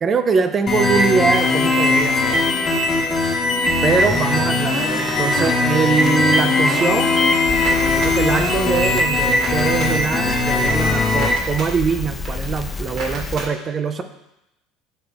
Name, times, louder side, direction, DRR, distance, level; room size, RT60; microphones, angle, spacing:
voice 1, 0.0-2.4 3.8-7.1 7.7-14.0, right 5 dB, 35° right, 8 dB, 0.5 m, -22 dB
sound 1, 0.7-11.3, left 2 dB, 35° left, 1.2 m, -19 dB
sound 2, 2.1-13.4, right 2 dB, 55° right, 1.8 m, -38 dB
Crackle, 7.4-13.5, left 4 dB, 20° left, 0.3 m, -30 dB
8.0 x 3.3 x 3.5 m, 0.87 s
supercardioid pair, 95°, 0 cm